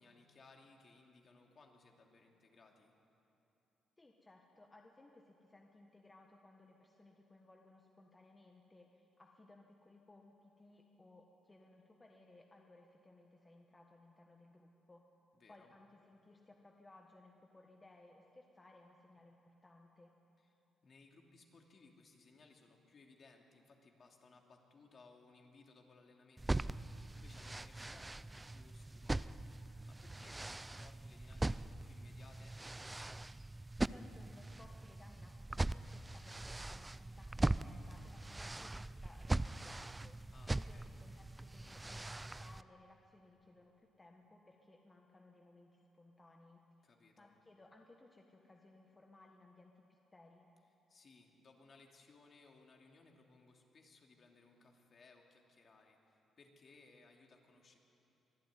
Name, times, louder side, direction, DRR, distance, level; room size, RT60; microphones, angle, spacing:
voice 1, 0.0-2.9 15.3-15.7 20.4-20.5 20.8-29.4 29.8-32.6 40.3-40.9 46.8-47.3 50.9-57.8, left 3 dB, 45° left, 1 dB, 2.7 m, -63 dB
voice 2, 4.0-15.0 15.5-20.1 33.8-40.3 40.6-46.6 47.2-50.5, left 2 dB, 20° left, 1 dB, 1.6 m, -62 dB
sound 1, 26.4-42.6, right 2 dB, 15° right, 0.4 m, -41 dB
23.0 x 12.0 x 9.5 m, 2.9 s
cardioid pair, 90°, 0 cm